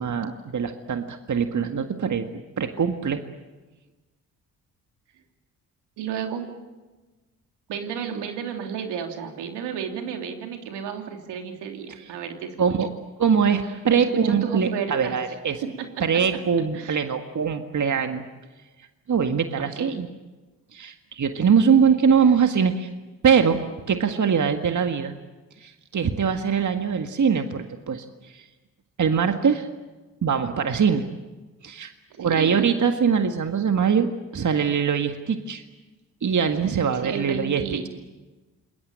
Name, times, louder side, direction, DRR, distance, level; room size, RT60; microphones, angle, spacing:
voice 1, 0.0-2.3 2.6-3.2 11.9-12.1 12.6-12.9 13.2-15.6 16.0-18.2 19.1-20.1 20.7-22.9 23.2-25.1 25.6-28.5 29.0-29.7 30.2-31.1 31.6-31.9 32.2-35.6 36.2-37.9, right 6 dB, 45° right, 6 dB, 1.8 m, -22 dB
voice 2, 6.0-6.5 7.7-12.6 13.9-15.2 16.7-17.0 19.6-20.0 32.2-32.7 36.9-37.9, right 7 dB, 75° right, 4 dB, 3.3 m, -32 dB
27.5 x 21.0 x 8.9 m, 1.2 s
hypercardioid pair, 45°, 41 cm